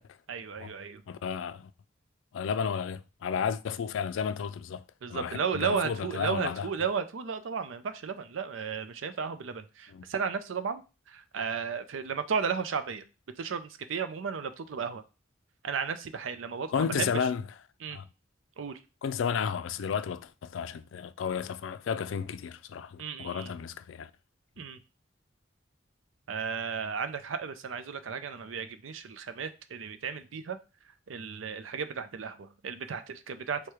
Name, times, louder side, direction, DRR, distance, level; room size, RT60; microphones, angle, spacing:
voice 1, 0.3-1.0 5.0-10.8 11.1-13.0 13.4-15.0 15.6-17.2 17.8-18.0 18.6-18.8 23.0-23.5 24.6-24.8 26.3-30.6 31.1-33.6, right 6 dB, 85° right, 0.5 m, -34 dB
voice 2, 1.1-1.7 2.3-4.8 5.1-6.7 9.9-10.1 16.7-17.4 17.9-18.1 19.0-24.1, left 6 dB, 80° left, 0.3 m, -32 dB
4.5 x 2.2 x 4.7 m
head